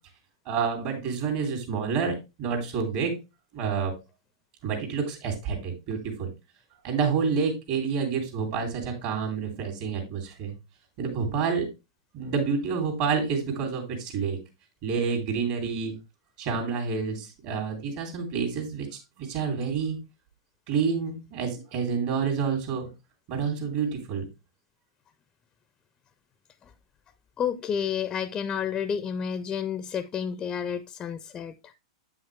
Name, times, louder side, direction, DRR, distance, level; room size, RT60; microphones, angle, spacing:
voice 1, 0.4-3.1 3.5-3.9 4.6-6.3 6.8-10.5 11.0-11.7 12.1-14.4 14.8-15.9 16.4-20.0 20.7-22.9 23.3-24.3, right 6 dB, 55° right, 2.7 m, -28 dB
voice 2, 27.4-31.7, left 7 dB, 25° left, 0.5 m, -30 dB
8.2 x 5.7 x 3.2 m
hypercardioid pair, 115°, 3 cm